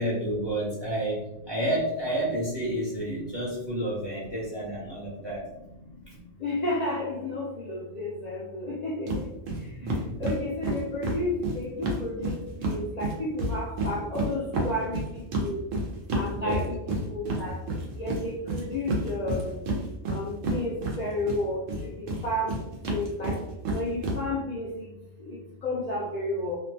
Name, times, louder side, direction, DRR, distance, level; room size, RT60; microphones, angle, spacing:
voice 1, 0.0-5.5 6.1-6.2 9.8-10.2 16.3-16.7, right 1 dB, 30° right, -6 dB, 0.5 m, -30 dB
voice 2, 6.4-9.1 10.2-15.0 15.4-15.6 16.1-16.7 17.1-17.6 18.0-19.6 20.1-22.6 22.8-23.3 23.7-24.9 25.3-26.6, left 1 dB, 55° left, -5 dB, 0.4 m, -32 dB
sound 1, 9.1-9.2 9.5-9.6 9.9-12.8 13.0-21.4 21.7-24.2, right 2 dB, 85° right, 1.0 m, -29 dB
2.7 x 2.2 x 2.6 m, 0.90 s
omnidirectional pair, 1.3 m